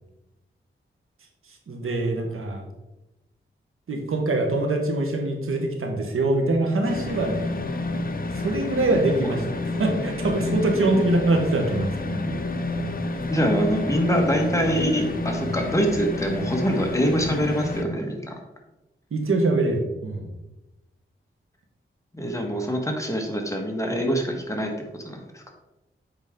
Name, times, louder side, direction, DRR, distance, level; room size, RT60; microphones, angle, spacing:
voice 1, 1.7-2.6 3.9-7.5 8.3-12.2 19.1-20.3, right 2 dB, 85° right, 2 dB, 1.3 m, -24 dB
sound 1, 6.8-17.8, left 2 dB, 45° left, 0.8 m, -29 dB
voice 2, 13.3-18.3 22.2-24.7 25.0-25.4, equal, 15° left, 1 dB, 1.5 m, -25 dB
8.1 x 5.1 x 3.7 m, 1.0 s
wide cardioid pair, 75°, 21 cm